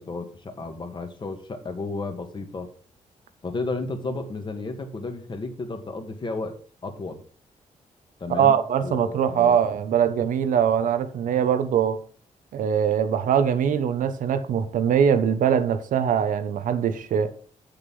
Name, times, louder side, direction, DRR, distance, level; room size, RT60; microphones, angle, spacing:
voice 1, 0.0-2.7 3.4-6.6 6.8-7.2 8.2-9.6, left 3 dB, 35° left, 1.7 m, -33 dB
voice 2, 8.3-12.0 12.5-17.3, right 8 dB, 85° right, 0.9 m, -22 dB
8.1 x 6.7 x 5.3 m
cardioid pair, 115°, 13 cm